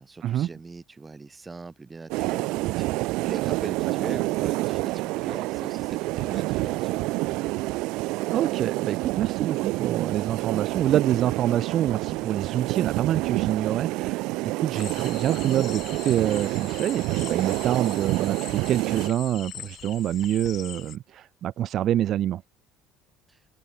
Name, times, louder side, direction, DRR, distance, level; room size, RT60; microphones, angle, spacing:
voice 1, 0.0-7.4 23.3-23.4, right 3 dB, 15° right, 2.9 m, -41 dB
sound 1, 2.1-19.1, right 21 dB, 70° right, 0.4 m, -28 dB
voice 2, 8.3-22.4, right 11 dB, 45° right, 0.9 m, -26 dB
sound 2, 14.8-21.0, left 11 dB, 40° left, 1.3 m, -42 dB
cardioid pair, 150°, 0 cm